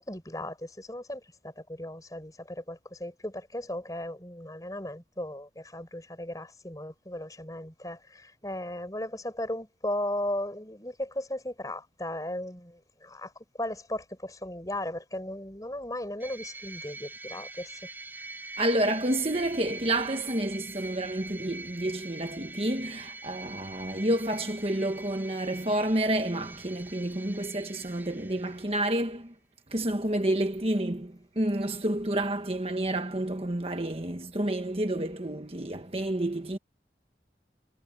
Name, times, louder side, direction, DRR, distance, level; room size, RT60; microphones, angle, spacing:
voice 1, 0.0-13.3 13.6-17.7, left 1 dB, 20° left, 4.7 m, -36 dB
sound 1, 16.2-29.0, right 2 dB, 10° right, 4.5 m, -44 dB
voice 2, 18.6-29.3 29.7-36.6, right 1 dB, 35° right, 1.3 m, -29 dB
head